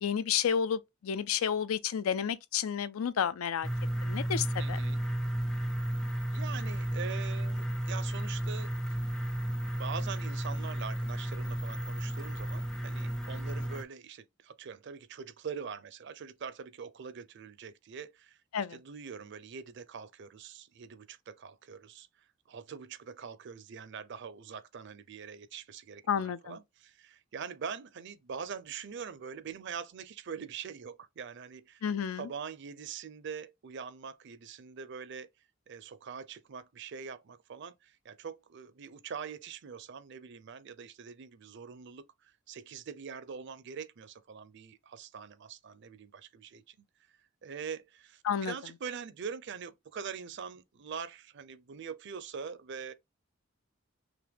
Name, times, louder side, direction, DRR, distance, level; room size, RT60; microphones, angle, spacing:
voice 1, 0.0-3.7 4.0-4.8 18.5-18.8 26.1-26.6 31.8-32.3 48.2-48.5, left 8 dB, 85° left, 0.4 m, -31 dB
sound 1, 3.6-13.8, right 1 dB, 5° left, 0.3 m, -33 dB
voice 2, 4.6-5.0 6.3-9.0 9.8-18.4 18.7-22.1 22.5-31.8 32.2-35.3 35.7-46.8 47.4-52.9, right 6 dB, 55° right, 0.5 m, -43 dB
5.9 x 2.2 x 3.4 m
head